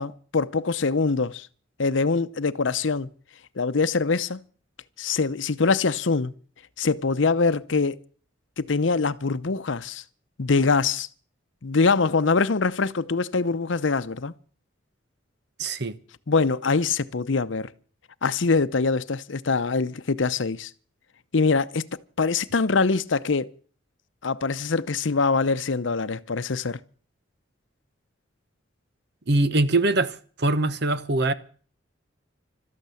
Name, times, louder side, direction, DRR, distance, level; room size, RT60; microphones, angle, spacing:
voice 1, 0.0-1.5 1.8-3.1 3.6-4.4 5.0-6.3 6.8-8.0 8.6-10.0 10.4-11.1 11.6-14.3 16.3-17.7 18.2-20.7 21.3-21.8 22.2-23.5 24.2-26.8, left 4 dB, 70° left, 0.7 m, -23 dB
voice 2, 15.6-16.0 29.3-31.3, right 2 dB, 60° right, 1.1 m, -23 dB
13.0 x 12.0 x 8.4 m
head